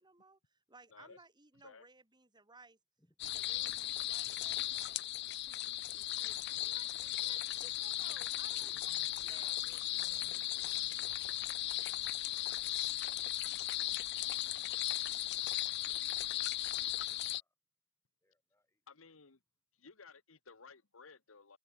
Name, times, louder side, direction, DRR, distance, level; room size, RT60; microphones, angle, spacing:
voice 1, 0.0-2.8 3.3-5.1 5.5-9.6, right 3 dB, 20° right, 3.7 m, -61 dB
voice 2, 0.9-1.2 1.6-1.9 18.9-19.4 19.8-21.6, left 4 dB, 90° left, 1.4 m, -56 dB
voice 3, 3.0-3.9 4.8-4.9 8.4-8.8 9.2-12.7 17.3-17.5 18.2-19.1, left 1 dB, 15° left, 3.9 m, -73 dB
sound 1, 3.2-17.4, left 14 dB, 55° left, 0.4 m, -37 dB
head